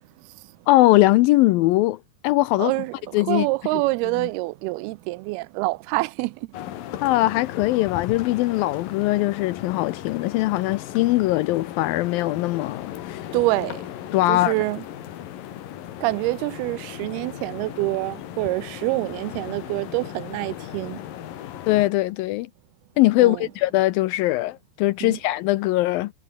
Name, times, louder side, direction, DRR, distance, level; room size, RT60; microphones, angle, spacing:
voice 1, 0.7-2.0 2.2-2.7 3.1-3.5 7.0-13.2 14.1-14.5 21.7-22.5 23.0-26.1, left 17 dB, 80° left, 2.2 m, -21 dB
voice 2, 2.6-6.5 13.3-13.8 14.3-14.8 16.0-21.0 23.2-23.5 25.0-25.2, right 22 dB, 85° right, 2.4 m, -26 dB
sound 1, 6.5-21.9, left 12 dB, 65° left, 3.0 m, -36 dB
omnidirectional pair, 4.6 m